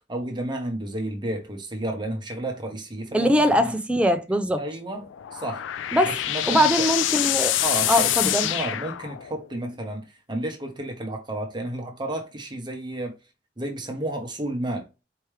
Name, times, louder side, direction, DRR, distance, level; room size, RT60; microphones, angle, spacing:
voice 1, 0.0-3.7 4.6-5.7 6.0-6.9 7.6-13.2 13.6-15.0, right 1 dB, 25° right, 1.0 m, -32 dB
voice 2, 3.1-4.6 5.9-6.1 6.5-7.5 7.9-8.5, equal, 5° right, 0.5 m, -21 dB
sound 1, 5.0-9.5, left 13 dB, 85° left, 0.3 m, -26 dB
4.7 x 3.0 x 3.2 m
head